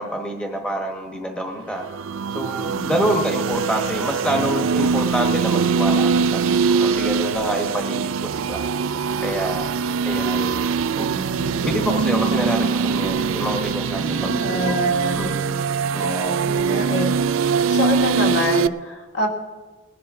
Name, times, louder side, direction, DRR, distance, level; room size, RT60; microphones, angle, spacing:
voice 1, 0.0-1.8 2.3-8.6 9.2-9.7 10.1-10.5 11.0-11.1 11.6-14.8 15.2-15.6 15.9-16.5, equal, 5° left, 2 dB, 1.3 m, -27 dB
sound 1, 1.8-18.7, right 5 dB, 75° right, 0.4 m, -22 dB
voice 2, 2.6-2.9 11.0-11.8 13.9-15.3 16.4-17.1 17.6-19.3, left 1 dB, 55° left, 0 dB, 2.1 m, -27 dB
20.0 x 11.5 x 3.8 m, 1.3 s
head